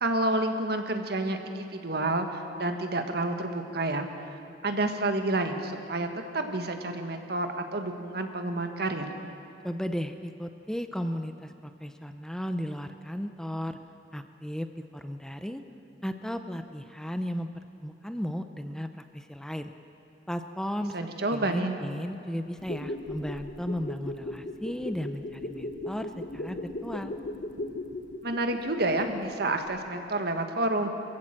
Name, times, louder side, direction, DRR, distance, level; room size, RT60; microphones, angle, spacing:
voice 1, 0.0-4.1 4.6-6.1 6.3-9.1 20.9-21.8 28.2-30.9, right 2 dB, 65° right, 5 dB, 1.7 m, -29 dB
voice 2, 9.6-13.8 14.1-15.6 16.0-17.5 17.8-19.7 20.3-21.0 21.3-27.1, equal, 5° left, 8 dB, 0.6 m, -35 dB
sound 1, 22.5-29.4 29.7-29.8, left 1 dB, 50° left, 1.2 m, -37 dB
23.0 x 15.5 x 7.6 m, 2.8 s
head